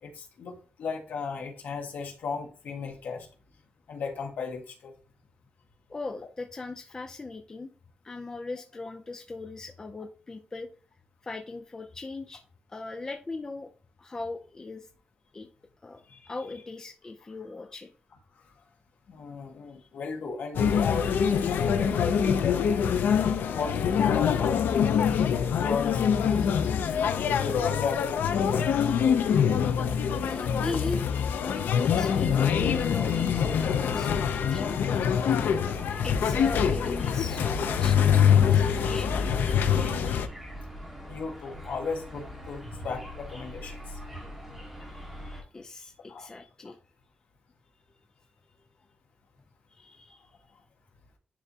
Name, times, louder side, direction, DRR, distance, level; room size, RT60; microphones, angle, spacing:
voice 1, 0.0-3.3 3.9-4.9 16.1-16.3 19.1-22.8 23.5-24.7 25.6-26.4 27.2-28.6 32.3-32.4 41.1-44.0 46.1-46.3, left 5 dB, 65° left, 2 dB, 1.6 m, -35 dB
voice 2, 5.9-7.7 8.0-10.7 11.2-12.4 12.7-13.7 14.0-14.9 15.3-15.5 15.8-16.0 16.3-17.9 19.7-19.9 30.2-31.0 31.3-34.8 36.0-39.2 45.2-46.8 49.7-50.3, left 3 dB, 20° left, 4 dB, 0.5 m, -39 dB
sound 1, 20.5-40.3, left 7 dB, 90° left, 0.5 m, -24 dB
sound 2, 32.3-45.4, equal, 5° right, 1.7 m, -40 dB
10.0 x 3.5 x 2.8 m, 0.36 s
wide cardioid pair, 180°, 3 cm